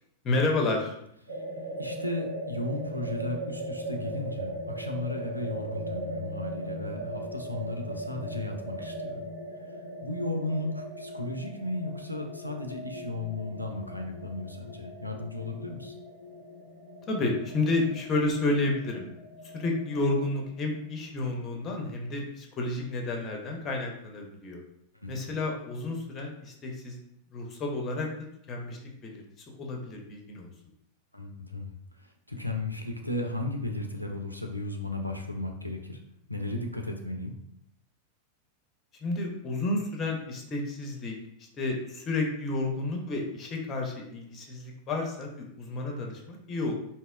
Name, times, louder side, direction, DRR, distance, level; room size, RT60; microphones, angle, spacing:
voice 1, 0.2-1.0 17.1-19.1 19.5-24.6 25.1-27.0 27.3-28.1 28.5-30.5 39.0-41.1 41.6-46.7, left 2 dB, 30° left, 1 dB, 0.5 m, -31 dB
sound 1, 1.3-20.9, right 1 dB, 90° right, 0.5 m, -39 dB
voice 2, 1.8-9.2 10.0-15.9 25.0-25.3 31.1-31.7 32.0-36.0 36.3-37.3, left 2 dB, 90° left, 3 dB, 0.3 m, -35 dB
2.7 x 2.1 x 2.2 m, 0.74 s
figure-of-eight pair, 90°, 0 cm